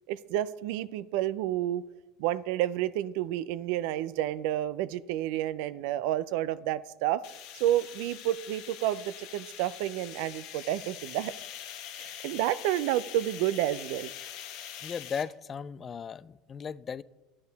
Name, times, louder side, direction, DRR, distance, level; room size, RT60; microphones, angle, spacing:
voice 1, 0.1-1.8 2.2-7.2 7.6-11.3 12.0-14.1, right 13 dB, 70° right, 0.4 m, -30 dB
sound 1, 7.2-15.2, left 10 dB, 65° left, 1.1 m, -44 dB
voice 2, 14.8-17.0, left 7 dB, 30° left, 0.3 m, -36 dB
11.5 x 8.6 x 4.0 m
supercardioid pair, 100°, 0 cm